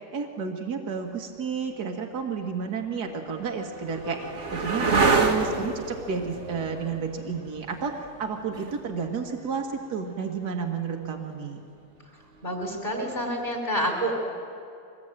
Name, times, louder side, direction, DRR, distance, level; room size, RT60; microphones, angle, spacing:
voice 1, 0.1-4.2 4.5-11.6, right 5 dB, 70° right, 2 dB, 2.3 m, -31 dB
sound 1, 1.7-1.8 2.7-10.3 12.6-13.2, right 4 dB, 45° right, 1.9 m, -29 dB
voice 2, 12.4-14.2, equal, 25° left, 1 dB, 5.4 m, -28 dB
25.0 x 20.5 x 9.1 m, 2.5 s
omnidirectional pair, 1.8 m